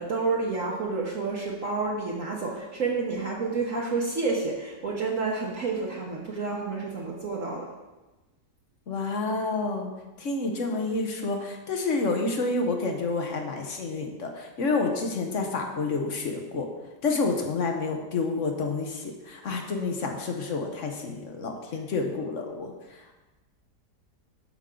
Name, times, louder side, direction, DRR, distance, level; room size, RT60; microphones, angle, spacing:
voice 1, 0.0-7.7, right 4 dB, 55° right, -3 dB, 1.4 m, -29 dB
voice 2, 8.9-9.9 10.2-16.7 17.0-22.7, left 3 dB, 50° left, 3 dB, 1.2 m, -29 dB
12.5 x 5.3 x 3.7 m, 1.1 s
omnidirectional pair, 1.7 m